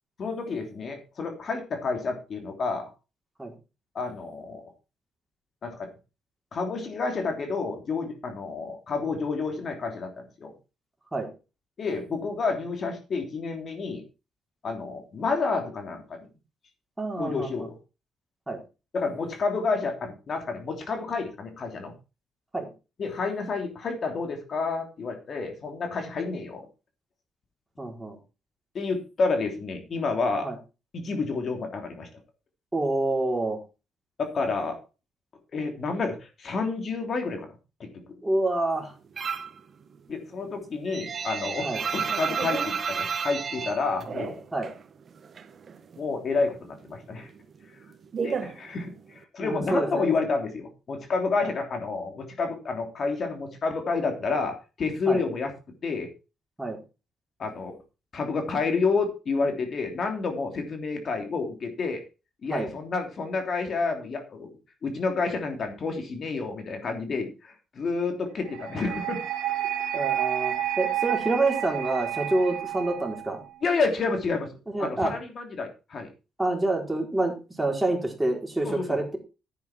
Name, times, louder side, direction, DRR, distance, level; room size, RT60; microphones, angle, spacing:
voice 1, 0.2-2.9 3.9-4.6 5.6-5.9 6.5-10.1 10.4-10.5 11.8-14.0 14.6-16.2 17.2-17.7 18.9-21.9 23.0-26.7 28.7-30.5 30.9-32.1 34.2-34.8 35.5-37.5 37.8-37.9 40.1-44.4 46.0-47.3 48.2-55.5 55.8-56.1 57.4-57.7 58.1-62.0 62.4-64.5 64.8-69.2 73.6-74.5 74.8-76.1 78.6-79.0, left 4 dB, 50° left, 4 dB, 3.2 m, -29 dB
voice 2, 17.0-17.7 18.5-18.6 22.5-22.7 27.8-28.2 30.4-30.6 32.7-33.6 38.2-38.9 41.6-41.8 44.5-44.7 49.4-50.1 55.1-55.2 56.6-56.8 62.5-62.7 69.9-73.4 74.7-75.1 76.4-79.2, right 2 dB, 10° right, 1 dB, 4.3 m, -27 dB
sound 1, 39.2-39.6 40.0-44.8 45.1-46.1 46.4-49.2, right 6 dB, 50° right, 1.3 m, -32 dB
sound 2, 68.5-73.5, right 11 dB, 85° right, 2.1 m, -30 dB
10.5 x 9.4 x 4.4 m, 0.31 s
cardioid pair, 90°, 0 cm